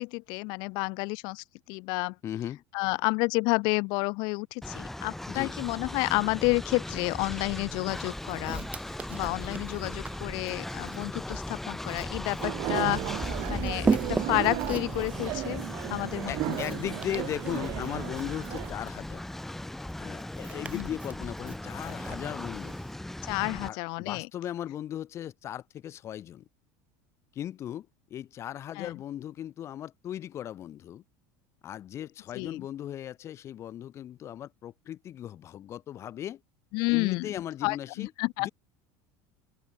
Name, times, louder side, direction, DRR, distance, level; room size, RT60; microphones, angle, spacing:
voice 1, 0.0-2.1 2.7-8.6 9.1-13.0 13.5-15.6 15.9-16.6 20.7-20.9 23.2-24.3 28.8-28.9 32.3-32.6 36.7-38.5, left 29 dB, 60° left, 0.7 m, -30 dB
voice 2, 2.2-2.6 5.3-5.5 16.3-19.2 20.0-22.8 23.6-26.4 27.3-31.0 31.6-36.4 36.9-38.1 38.4-38.5, left 11 dB, 30° left, 0.9 m, -37 dB
Train, 4.6-23.7, left 1 dB, 5° left, 0.5 m, -38 dB
Walk footsteps, 7.9-22.9, right 5 dB, 15° right, 1.0 m, -38 dB
sound 1, 12.4-18.7, right 21 dB, 50° right, 1.6 m, -35 dB
open air
supercardioid pair, 145°, 9 cm